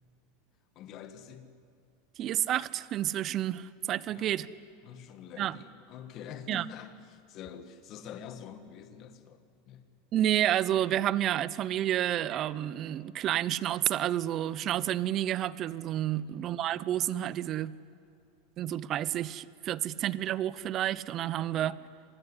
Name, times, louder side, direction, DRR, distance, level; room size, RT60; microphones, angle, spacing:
voice 1, 0.7-1.5 4.1-4.3 4.8-9.8 16.1-16.4 21.5-21.8, left 8 dB, 40° left, 1.7 m, -46 dB
voice 2, 2.2-4.5 5.4-5.5 6.5-6.6 10.1-17.7 18.6-21.8, right 12 dB, 35° right, 0.7 m, -30 dB
25.5 x 20.0 x 9.8 m
supercardioid pair, 150°, 0 cm